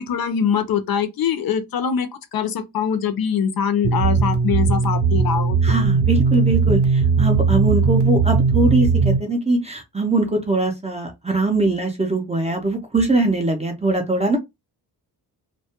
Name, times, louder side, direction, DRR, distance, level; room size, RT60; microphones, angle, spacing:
voice 1, 0.0-5.6, left 7 dB, 60° left, 0.5 m, -23 dB
sound 1, 3.8-9.2, right 5 dB, 80° right, 0.6 m, -18 dB
voice 2, 5.6-6.8 7.2-14.4, right 2 dB, 15° right, 0.4 m, -21 dB
2.2 x 2.0 x 2.8 m
wide cardioid pair, 155°, 40 cm